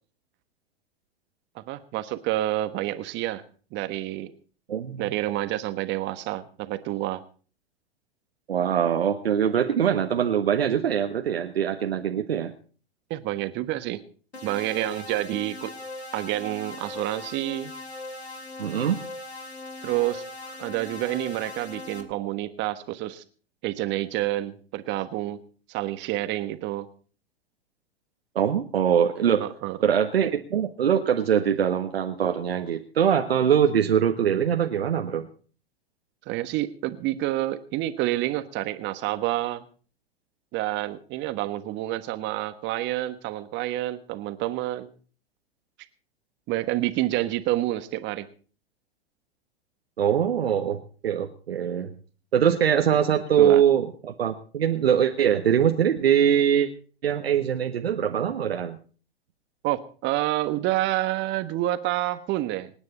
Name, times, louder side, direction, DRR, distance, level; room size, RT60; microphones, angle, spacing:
voice 1, 1.5-3.4 3.7-4.3 5.0-7.2 13.1-14.0 14.4-15.7 16.1-17.7 19.8-23.2 23.6-25.4 25.7-26.9 29.4-29.8 36.3-39.6 40.5-44.9 46.5-48.3 52.9-53.1 53.4-53.6 59.6-62.7, right 15 dB, 35° right, 11 dB, 1.3 m, -28 dB
voice 2, 4.7-5.0 8.5-12.5 18.6-19.0 28.3-29.4 29.8-35.3 50.0-51.9 52.3-56.7 57.0-58.8, right 8 dB, 70° right, 4 dB, 1.4 m, -23 dB
sound 1, 14.3-22.0, left 2 dB, 85° left, 2.7 m, -39 dB
26.5 x 9.7 x 4.3 m, 0.41 s
figure-of-eight pair, 100°, 31 cm